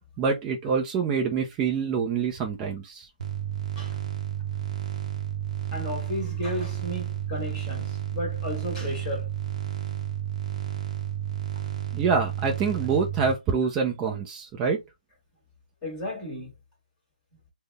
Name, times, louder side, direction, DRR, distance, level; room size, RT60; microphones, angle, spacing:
voice 1, 0.2-3.1 11.9-14.8, right 5 dB, 15° right, 0.5 m, -26 dB
sound 1, 3.2-13.3, right 10 dB, 40° right, 0.8 m, -32 dB
voice 2, 5.7-9.3 15.8-16.5, left 1 dB, 15° left, 1.7 m, -33 dB
3.7 x 2.1 x 3.4 m
hypercardioid pair, 160°, 5 cm